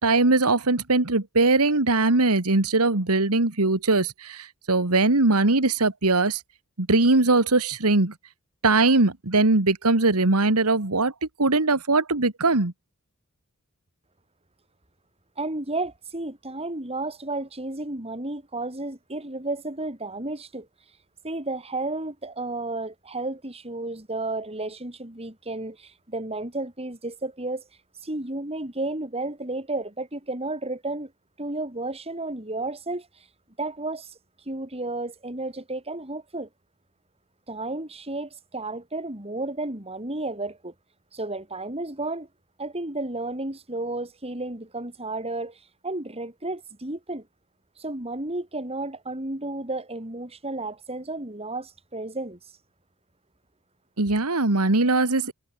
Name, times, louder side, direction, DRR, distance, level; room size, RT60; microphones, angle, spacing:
voice 1, 0.0-6.4 6.8-8.1 8.6-11.1 11.4-12.7 54.0-55.3, right 3 dB, 85° right, 2.1 m, -21 dB
voice 2, 15.4-20.7 21.2-27.6 28.0-31.1 31.4-33.1 33.6-34.2 34.5-36.5 37.5-40.7 41.1-42.3 42.6-47.3 47.8-52.4, right 2 dB, 25° right, 4.3 m, -32 dB
head